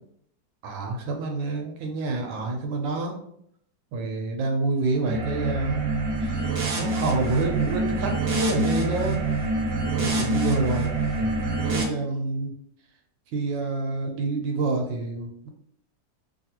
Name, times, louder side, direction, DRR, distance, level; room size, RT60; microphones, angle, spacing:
voice 1, 0.6-3.2 3.9-5.9 6.2-6.5 6.7-9.2 10.0-10.9 11.2-11.3 11.6-12.5 13.3-15.5, right 3 dB, 80° right, 3 dB, 1.3 m, -28 dB
sound 1, 5.0-11.8, right 2 dB, 60° right, 1.0 m, -26 dB
3.3 x 2.6 x 2.8 m, 0.68 s
omnidirectional pair, 2.0 m